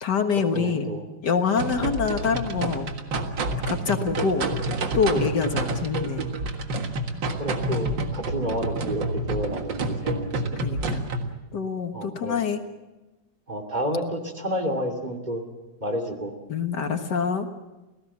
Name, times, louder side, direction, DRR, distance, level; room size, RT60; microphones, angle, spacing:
voice 1, 0.0-0.9 1.2-2.9 3.7-4.5 4.9-6.4 10.6-11.1 11.5-12.6 16.5-17.5, left 5 dB, 70° left, 6 dB, 2.1 m, -25 dB
voice 2, 0.5-1.0 1.8-1.9 7.4-10.6 11.9-12.4 13.5-15.5 15.8-16.3, equal, 25° right, 3 dB, 3.0 m, -30 dB
sound 1, 1.6-11.3, right 2 dB, 80° right, 2.4 m, -28 dB
30.0 x 17.0 x 7.3 m, 1.1 s
omnidirectional pair, 2.0 m